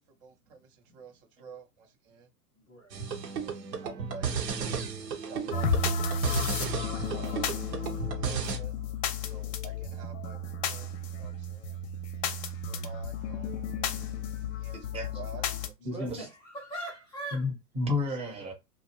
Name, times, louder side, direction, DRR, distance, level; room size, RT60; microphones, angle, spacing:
voice 1, 0.2-2.3 3.4-3.5 3.8-8.7 9.2-11.8 12.7-13.5 14.6-14.8 15.1-15.7 18.4-18.5, right 4 dB, 45° right, 0.7 m, -50 dB
voice 2, 2.6-3.0 15.8-17.5, right 1 dB, 10° left, 0.3 m, -41 dB
sound 1, 2.9-8.6, right 6 dB, 80° right, 0.8 m, -34 dB
sound 2, 5.5-15.7, left 4 dB, 55° left, 0.6 m, -33 dB
voice 3, 14.7-15.2 15.8-16.3 17.3-18.5, left 2 dB, 10° right, 0.7 m, -32 dB
2.4 x 2.0 x 2.7 m
hypercardioid pair, 110°, 48 cm